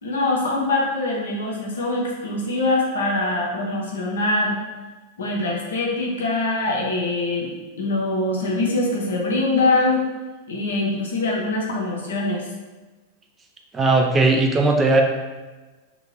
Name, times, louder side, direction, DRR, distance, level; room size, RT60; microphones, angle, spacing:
voice 1, 0.0-4.6 5.2-7.5 7.8-10.0 10.5-12.5, left 2 dB, 65° left, -1 dB, 0.6 m, -23 dB
voice 2, 13.7-15.0, right 3 dB, 15° right, 2 dB, 0.3 m, -17 dB
2.6 x 2.2 x 3.0 m, 1.2 s
figure-of-eight pair, 90°, 0 cm